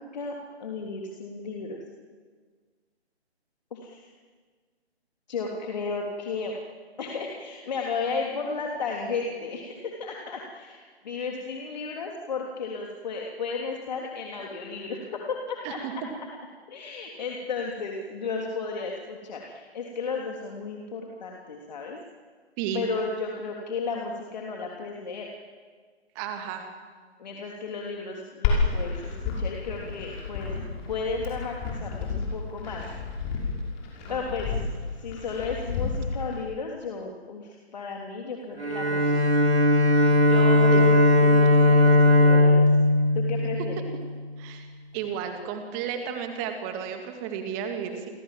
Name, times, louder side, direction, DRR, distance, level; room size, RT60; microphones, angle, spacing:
voice 1, 0.1-1.8 3.7-4.0 5.3-6.5 7.0-16.0 16.7-22.0 22.7-25.3 27.2-32.8 34.1-34.6 35.0-39.1 40.2-42.7 43.1-43.8, left 4 dB, 40° left, 0 dB, 3.4 m, -34 dB
voice 2, 26.2-26.7 34.1-34.3 40.7-40.9 44.4-44.7 44.9-48.1, right 8 dB, 15° right, 6 dB, 2.2 m, -33 dB
Glass, 28.4-36.4, left 4 dB, 20° left, 6.0 m, -30 dB
Bowed string instrument, 38.6-44.0, left 2 dB, 85° right, 7.1 m, -19 dB
29.0 x 23.5 x 7.7 m, 1.5 s
figure-of-eight pair, 150°, 33 cm